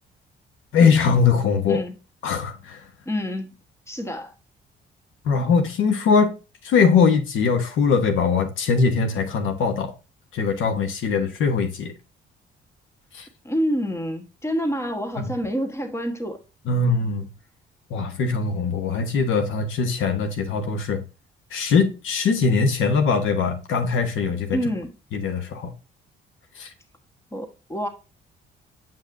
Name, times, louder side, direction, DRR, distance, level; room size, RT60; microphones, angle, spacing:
voice 1, 0.7-1.8 2.2-2.8 5.2-6.3 6.6-9.9 10.3-11.9 13.1-13.3 15.2-15.3 16.7-17.3 17.9-21.0 21.5-24.6 25.1-25.7 26.6-26.7, left 5 dB, 80° left, 1.2 m, -21 dB
voice 2, 3.1-3.5 3.9-4.3 13.4-16.4 24.5-25.0 27.3-27.9, equal, 15° left, 1.3 m, -27 dB
7.3 x 5.3 x 2.6 m
cardioid pair, 90°, 20 cm